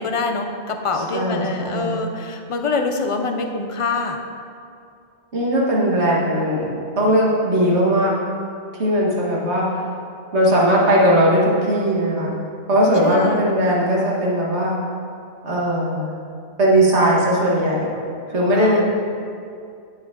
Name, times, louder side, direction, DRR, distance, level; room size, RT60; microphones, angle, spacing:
voice 1, 0.0-4.2 13.0-13.5 18.5-18.8, left 3 dB, 35° left, 5 dB, 0.6 m, -25 dB
voice 2, 0.9-2.0 5.3-6.6 7.0-8.1 8.8-9.7 10.3-12.4 12.7-14.8 15.4-16.1 16.6-17.9 18.3-18.8, equal, 85° right, -5 dB, 2.0 m, -18 dB
10.0 x 7.2 x 3.7 m, 2.4 s
omnidirectional pair, 1.1 m